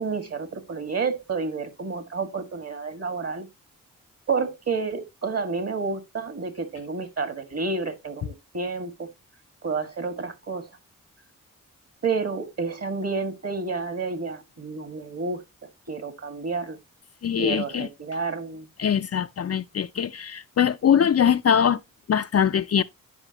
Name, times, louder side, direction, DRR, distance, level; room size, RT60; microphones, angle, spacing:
voice 1, 0.0-3.5 4.3-9.1 9.6-10.6 12.0-15.4 15.9-16.8 17.4-18.7, right 4 dB, 45° right, 2.0 m, -30 dB
voice 2, 17.2-17.9 18.8-21.8 22.1-22.8, left 8 dB, 45° left, 0.5 m, -22 dB
11.0 x 5.1 x 2.9 m
supercardioid pair, 45°, 34 cm